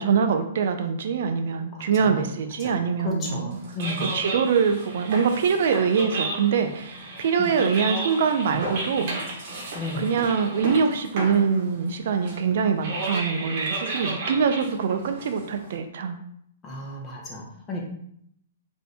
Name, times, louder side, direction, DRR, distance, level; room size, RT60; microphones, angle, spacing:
voice 1, 0.0-3.6 4.1-9.2 10.0-16.2, right 6 dB, 65° right, 6 dB, 0.3 m, -24 dB
voice 2, 3.0-4.1 7.4-7.5 9.7-10.0 16.6-17.8, left 1 dB, 20° left, -2 dB, 0.8 m, -33 dB
sound 1, 3.5-15.8, right 2 dB, 45° right, 1.0 m, -33 dB
2.6 x 2.6 x 3.3 m, 0.71 s
hypercardioid pair, 145°, 0 cm